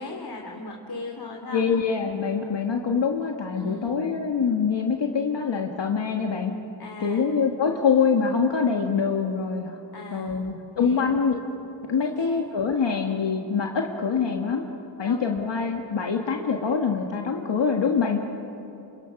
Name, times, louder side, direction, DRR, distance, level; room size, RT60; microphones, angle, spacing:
voice 1, 0.0-1.6 3.6-4.0 6.8-7.3 9.9-10.4 10.8-11.1 12.0-12.4 15.0-15.3, left 2 dB, 60° left, 1 dB, 2.8 m, -38 dB
voice 2, 1.5-6.5 7.0-9.8 10.1-11.4 11.9-14.6 15.0-18.2, left 5 dB, 75° left, 2 dB, 1.7 m, -24 dB
29.5 x 27.0 x 6.0 m, 2.9 s
wide cardioid pair, 80°, 43 cm